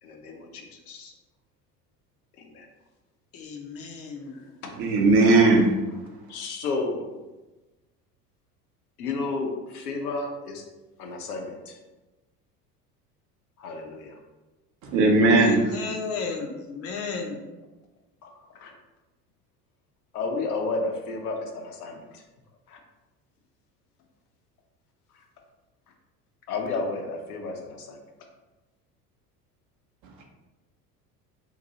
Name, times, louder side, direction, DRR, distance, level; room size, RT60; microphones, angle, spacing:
voice 1, 0.0-1.1 2.4-2.7 4.6-4.7 6.3-7.1 9.0-10.6 11.0-11.8 13.6-14.2 18.2-18.7 20.1-22.2 22.7-22.8 26.5-28.0, left 3 dB, 65° left, 2 dB, 0.8 m, -32 dB
voice 2, 3.3-4.5 15.4-17.4, left 4 dB, 30° left, 2 dB, 0.6 m, -33 dB
voice 3, 4.8-5.7 14.9-15.6, right 2 dB, 40° right, 1 dB, 0.8 m, -18 dB
2.8 x 2.6 x 3.9 m, 1.1 s
figure-of-eight pair, 70°, 48 cm